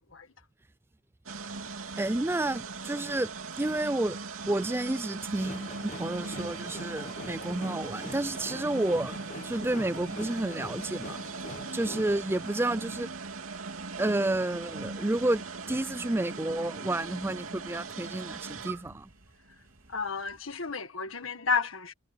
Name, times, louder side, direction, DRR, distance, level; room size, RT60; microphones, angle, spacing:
sound 1, 1.3-20.4, right 4 dB, 85° right, 2.9 m, -40 dB
voice 1, 2.0-4.2 4.5-11.2 11.7-13.1 14.0-19.1, right 1 dB, 10° right, 0.4 m, -30 dB
sound 2, 5.4-12.1, left 2 dB, 35° left, 1.4 m, -44 dB
voice 2, 19.9-21.9, left 5 dB, 80° left, 1.6 m, -32 dB
head